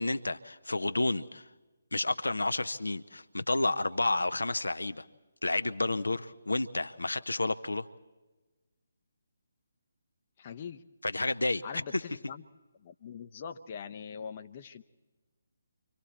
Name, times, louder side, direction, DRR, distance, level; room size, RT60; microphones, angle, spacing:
voice 1, 0.0-1.5 1.9-5.0 5.4-7.9 11.0-11.6 11.9-12.0, left 2 dB, 75° left, 0.7 m, -30 dB
voice 2, 10.4-10.8 11.6-12.4 12.8-14.8, left 7 dB, 35° left, 0.8 m, -42 dB
29.5 x 25.0 x 4.3 m
figure-of-eight pair, 145°, 0 cm